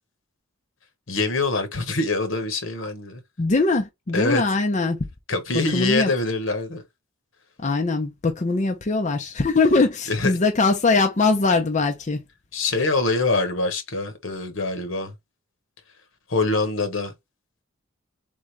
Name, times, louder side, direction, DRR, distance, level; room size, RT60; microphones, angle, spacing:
voice 1, 1.1-3.2 4.1-4.4 5.3-6.8 10.1-10.3 12.5-15.1 16.3-17.1, left 3 dB, 75° left, 1.3 m, -24 dB
voice 2, 3.4-5.0 5.5-6.1 7.6-12.2, left 3 dB, 35° left, 0.6 m, -21 dB
3.8 x 3.7 x 3.1 m
head